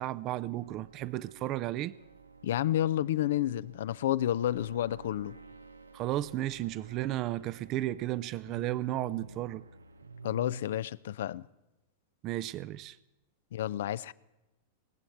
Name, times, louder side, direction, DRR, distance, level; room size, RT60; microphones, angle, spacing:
voice 1, 0.0-1.9 5.9-9.6 12.2-13.0, right 15 dB, 40° right, 0.4 m, -34 dB
sound 1, 0.6-10.6, right 4 dB, 90° right, 0.7 m, -50 dB
voice 2, 2.4-5.4 10.2-11.5 13.5-14.1, left 12 dB, 65° left, 0.4 m, -30 dB
20.5 x 7.8 x 8.6 m
hypercardioid pair, 100°, 0 cm